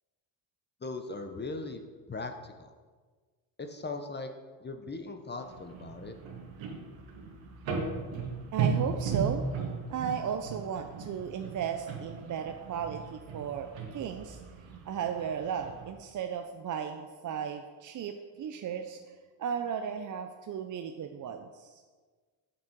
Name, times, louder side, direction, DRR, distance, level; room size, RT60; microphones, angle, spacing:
voice 1, 0.8-1.8 2.1-2.8 3.6-4.3 4.6-6.2, left 3 dB, 20° left, 6 dB, 0.7 m, -39 dB
sound 1, 5.4-15.9, right 5 dB, 70° right, 1.8 m, -36 dB
voice 2, 8.5-9.4 9.9-19.1 19.4-21.8, right 8 dB, 40° right, 5 dB, 0.5 m, -35 dB
7.3 x 6.0 x 4.5 m, 1.5 s
cardioid pair, 95°, 48 cm